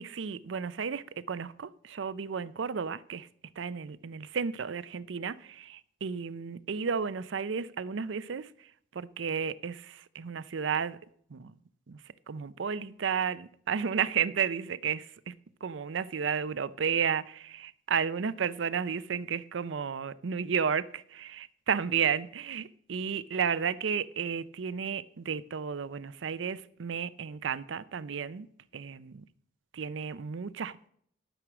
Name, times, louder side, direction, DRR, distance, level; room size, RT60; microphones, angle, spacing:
voice 1, 0.0-3.3 3.6-8.5 8.9-11.0 11.3-11.5 11.9-12.0 12.3-15.3 15.6-28.5 28.7-29.2 29.7-30.8, right 6 dB, 85° right, 0.5 m, -32 dB
12.0 x 6.2 x 6.1 m
head